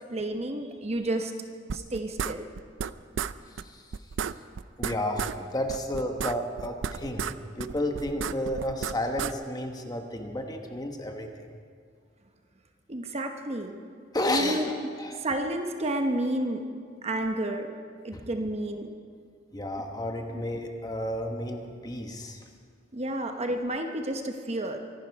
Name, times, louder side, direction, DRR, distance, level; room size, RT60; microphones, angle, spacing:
voice 1, 0.1-1.3 1.7-2.4 12.9-13.7 14.3-14.7 15.2-16.6 17.0-17.7 18.0-18.9 22.9-24.8, right 1 dB, 35° right, 5 dB, 0.9 m, -30 dB
sound 1, 1.7-2.9 3.2-3.3 3.6-3.7 3.9-5.4 5.7-7.3 7.6-9.3, right 7 dB, 70° right, 0.4 m, -32 dB
voice 2, 3.5-4.1 4.8-11.6 14.1-15.3 18.1-18.3 19.5-22.4, left 1 dB, 20° left, 4 dB, 1.2 m, -32 dB
24.0 x 11.5 x 4.7 m, 2.1 s
head